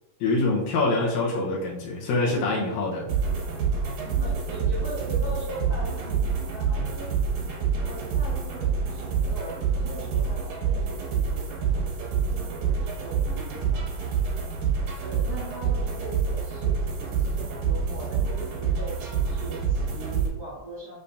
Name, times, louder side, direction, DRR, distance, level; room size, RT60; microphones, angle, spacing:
voice 1, 0.2-3.1, left 2 dB, 90° left, -3 dB, 2.2 m, -25 dB
sound 1, 3.1-20.3, right 5 dB, 85° right, 2.4 m, -27 dB
voice 2, 4.0-7.1 7.8-14.0 14.9-21.0, right 1 dB, 40° right, -12 dB, 1.6 m, -40 dB
5.5 x 3.4 x 2.6 m, 0.94 s
omnidirectional pair, 3.4 m